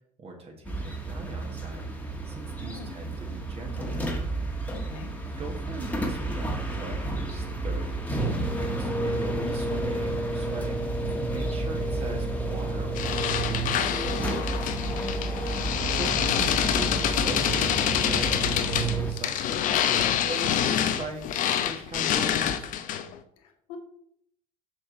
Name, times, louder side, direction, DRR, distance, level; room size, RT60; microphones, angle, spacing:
voice 1, 0.2-1.8 2.2-4.1 4.6-10.8 11.2-14.4 15.6-19.7 20.0-22.7, right 2 dB, 30° right, 2 dB, 1.7 m, -41 dB
sound 1, 0.6-19.1, right 2 dB, 10° left, 1.5 m, -30 dB
voice 2, 2.6-2.9 4.7-5.1 14.9-15.5 23.4-23.8, left 8 dB, 65° left, 5 dB, 1.3 m, -45 dB
sound 2, 13.0-23.2, left 9 dB, 45° left, 0.7 m, -26 dB
6.2 x 6.2 x 4.1 m, 0.69 s
figure-of-eight pair, 65°, 19 cm